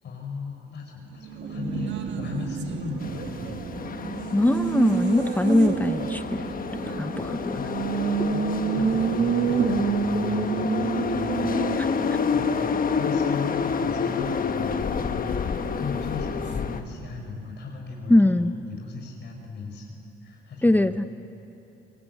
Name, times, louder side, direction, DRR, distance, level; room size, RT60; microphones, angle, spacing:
voice 1, 0.0-4.3 7.5-21.0, left 4 dB, 60° left, 0 dB, 5.3 m, -38 dB
Race car auto racing, 1.1-17.4, right 6 dB, 65° right, 1.8 m, -30 dB
sound 1, 3.0-16.8, left 6 dB, 45° left, 1.2 m, -29 dB
voice 2, 4.3-6.5 7.0-7.6 11.8-11.9 18.1-18.5 20.6-21.0, left 1 dB, 10° left, 10 dB, 0.7 m, -21 dB
24.5 x 21.0 x 9.2 m, 3.0 s
cardioid pair, 90°, 20 cm